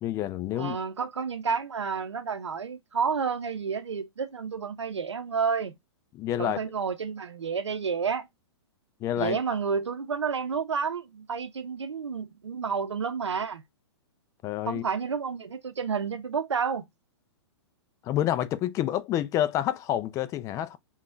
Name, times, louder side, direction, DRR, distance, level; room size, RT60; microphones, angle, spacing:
voice 1, 0.0-0.8 6.1-6.6 9.0-9.4 14.4-14.8 18.0-20.8, left 12 dB, 20° left, 0.3 m, -28 dB
voice 2, 0.5-5.7 6.4-8.3 9.2-13.6 14.7-16.8, right 6 dB, 85° right, 0.7 m, -30 dB
3.5 x 2.3 x 2.5 m
hypercardioid pair, 115°, 14 cm